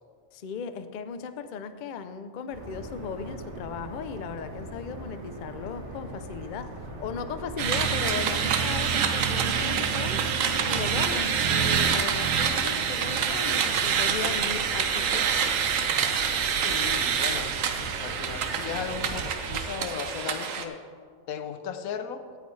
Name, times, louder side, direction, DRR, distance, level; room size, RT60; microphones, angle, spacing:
voice 1, 0.3-6.7 7.0-10.2 10.6-15.3, left 6 dB, 55° left, 10 dB, 0.5 m, -36 dB
sound 1, 2.5-19.1, right 1 dB, 55° right, 1.8 m, -41 dB
sound 2, 7.6-20.6, right 7 dB, 70° right, 1.2 m, -26 dB
Acoustic guitar, 10.5-14.0, right 2 dB, 25° right, 1.3 m, -49 dB
voice 2, 16.6-17.5 18.0-20.8 21.3-22.3, left 7 dB, 90° left, 9 dB, 1.2 m, -36 dB
16.5 x 10.0 x 3.2 m, 2.1 s
omnidirectional pair, 1.4 m